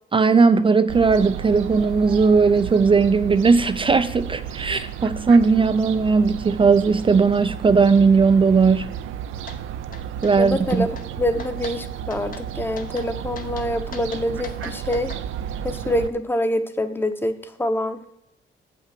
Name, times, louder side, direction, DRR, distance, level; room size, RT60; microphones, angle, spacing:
voice 1, 0.1-9.0 10.2-10.9, right 4 dB, 25° right, 0.5 m, -17 dB
Fowl, 0.9-16.1, right 9 dB, 85° right, 0.6 m, -33 dB
sound 1, 9.5-9.6 9.9-10.3 10.7-11.1 11.4-11.8 12.1-12.5 12.8-13.1 13.4-15.2, left 5 dB, 45° left, 1.0 m, -39 dB
voice 2, 10.4-10.9 11.2-15.1 15.6-17.3 17.6-18.0, left 1 dB, 10° left, 0.9 m, -25 dB
7.9 x 5.9 x 5.9 m
cardioid pair, 90°, 20 cm